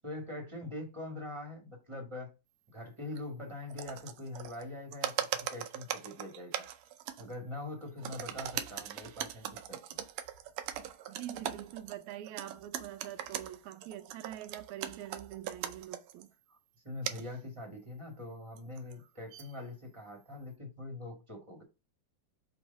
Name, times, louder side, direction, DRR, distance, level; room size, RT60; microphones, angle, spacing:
voice 1, 0.0-2.3 2.7-6.7 7.2-9.8 16.5-16.6 16.8-21.6, left 2 dB, 15° right, 1.2 m, -43 dB
sound 1, 3.2-3.3 3.6-4.6 4.9-7.4 7.8-16.2 17.0-17.3 18.6-19.6, right 11 dB, 75° right, 1.7 m, -40 dB
voice 2, 11.1-16.3, right 12 dB, 90° right, 2.0 m, -44 dB
6.1 x 3.1 x 5.3 m
omnidirectional pair, 3.3 m